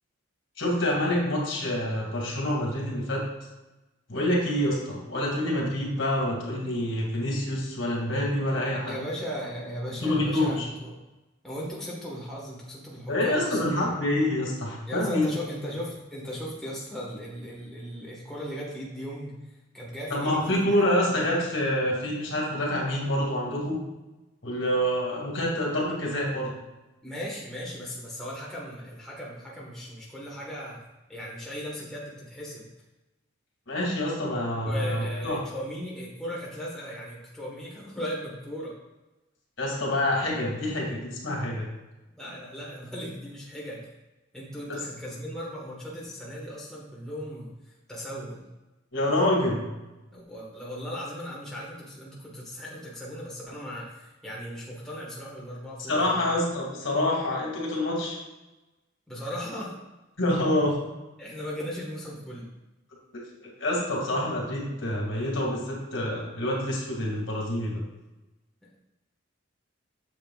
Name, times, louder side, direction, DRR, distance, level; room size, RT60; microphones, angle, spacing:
voice 1, 0.6-3.2 4.1-8.9 10.0-10.7 13.1-15.3 20.1-23.8 24.4-26.5 33.7-35.4 39.6-41.7 44.7-44.8 48.9-49.6 55.9-58.2 60.2-60.7 63.1-67.8, left 1 dB, 65° left, -3 dB, 2.3 m, -27 dB
voice 2, 8.8-10.9 11.4-13.6 14.9-20.6 21.0-21.2 27.0-30.8 31.1-32.7 34.6-38.7 42.2-43.8 44.3-47.5 47.9-48.4 50.1-56.2 59.1-59.7 61.2-62.5, equal, ahead, -6 dB, 1.5 m, -37 dB
8.7 x 6.9 x 2.4 m, 1.1 s
head